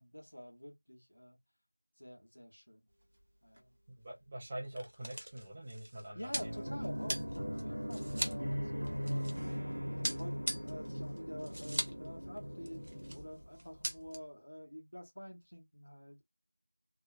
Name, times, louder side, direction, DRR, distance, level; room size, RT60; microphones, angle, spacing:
voice 1, 0.0-1.4 2.0-2.9 3.4-3.8 6.1-9.3 9.9-16.2, equal, 50° left, 1.1 m, -48 dB
sound 1, 3.0-3.3 3.5-3.6 4.4-9.6 10.0-12.1 12.3-12.4 12.7-13.2 13.5-14.1, equal, 35° right, 0.7 m, -40 dB
voice 2, 4.0-6.6, right 1 dB, 5° right, 0.3 m, -45 dB
sound 2, 6.3-13.9, equal, 90° right, 0.9 m, -39 dB
2.7 x 2.1 x 2.5 m
figure-of-eight pair, 180°, 0 cm